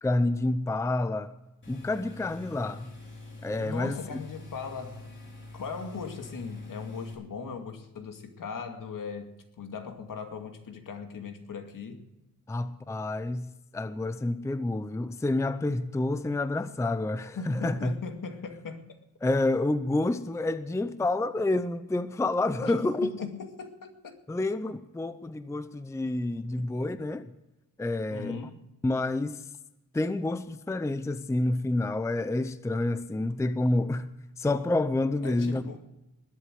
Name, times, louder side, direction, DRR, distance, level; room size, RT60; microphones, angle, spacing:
voice 1, 0.0-1.3 1.7-2.9 3.4-4.0 12.5-17.9 19.2-23.1 24.3-27.3 27.8-28.4 28.8-29.4 29.9-34.1 34.4-35.8, left 2 dB, 10° left, 0.5 m, -28 dB
sound 1, 1.6-7.1, left 2 dB, 35° left, 4.6 m, -45 dB
voice 2, 3.5-5.0 5.5-12.0 17.3-18.8 22.6-22.7 23.0-24.2 26.5-26.6 28.1-28.5 35.2-35.8, left 5 dB, 70° left, 2.3 m, -39 dB
20.5 x 8.1 x 6.4 m
wide cardioid pair, 130°, 34 cm